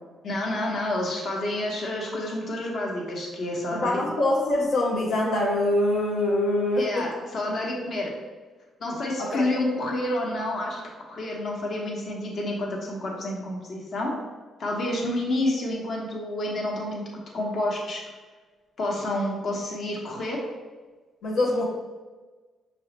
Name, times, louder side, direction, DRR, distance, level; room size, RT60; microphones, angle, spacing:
voice 1, 0.2-4.0 6.8-8.1 8.8-14.1 14.6-17.0 17.3-18.0 18.8-20.4, left 1 dB, 55° left, -2 dB, 1.1 m, -29 dB
voice 2, 3.7-7.1 9.2-9.5 21.2-21.7, left 1 dB, 85° left, -5 dB, 0.8 m, -24 dB
5.4 x 3.1 x 3.0 m, 1.3 s
cardioid pair, 90°, 0 cm